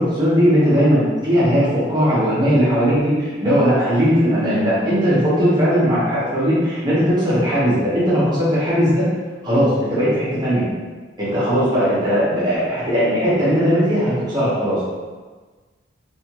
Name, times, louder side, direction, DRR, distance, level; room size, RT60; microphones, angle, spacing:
voice 1, 0.0-9.0 9.4-10.6 11.2-14.8, equal, 20° right, -10 dB, 1.1 m, -18 dB
3.3 x 2.7 x 3.0 m, 1.4 s
head